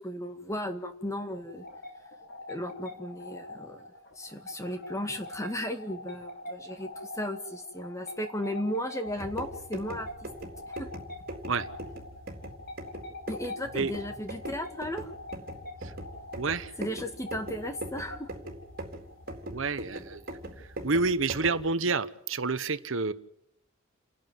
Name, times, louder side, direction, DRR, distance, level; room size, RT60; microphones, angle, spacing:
voice 1, 0.0-1.7 2.5-3.8 4.2-10.3 10.7-10.9 13.3-15.1 16.8-18.3, equal, 15° left, 7 dB, 1.9 m, -35 dB
sound 1, 0.9-4.5 4.8-5.9 6.2-9.6, left 1 dB, 65° left, 4.8 m, -60 dB
sound 2, 1.3-20.7, left 1 dB, 50° left, 3.0 m, -45 dB
sound 3, 9.1-21.7, right 1 dB, 45° right, 4.1 m, -41 dB
voice 2, 16.4-16.8 19.5-20.2 20.6-23.1, right 4 dB, 70° right, 13 dB, 1.0 m, -29 dB
29.5 x 11.5 x 9.3 m, 0.79 s
head